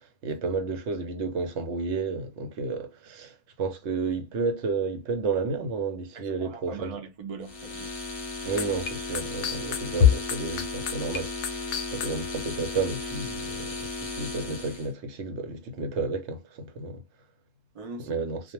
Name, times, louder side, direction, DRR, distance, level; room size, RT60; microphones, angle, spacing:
voice 1, 0.2-3.3 3.6-6.9 8.4-11.3 11.9-17.0 18.1-18.4, right 4 dB, 70° right, 0.9 m, -31 dB
voice 2, 6.1-7.9 17.7-18.2, right 4 dB, 50° right, 0.4 m, -40 dB
sound 1, 7.4-14.9, left 3 dB, 40° left, 0.8 m, -35 dB
sound 2, 8.6-12.1, left 8 dB, 70° left, 0.8 m, -22 dB
2.2 x 2.1 x 2.9 m
omnidirectional pair, 1.2 m